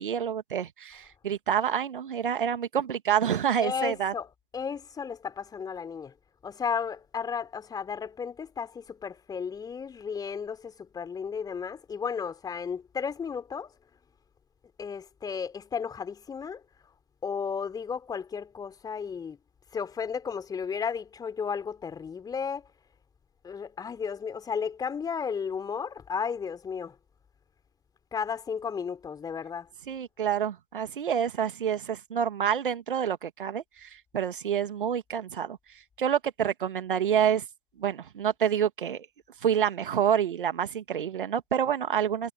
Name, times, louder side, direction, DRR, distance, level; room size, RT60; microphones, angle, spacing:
voice 1, 0.0-4.1 29.9-35.6 36.0-37.4 37.8-39.1 39.4-42.3, right 8 dB, 60° right, 2.4 m, -28 dB
voice 2, 3.6-6.1 6.4-13.7 14.8-16.6 17.2-19.4 19.7-22.7 23.4-27.0 28.1-29.7, left 6 dB, 15° left, 3.7 m, -34 dB
figure-of-eight pair, 110°, 29 cm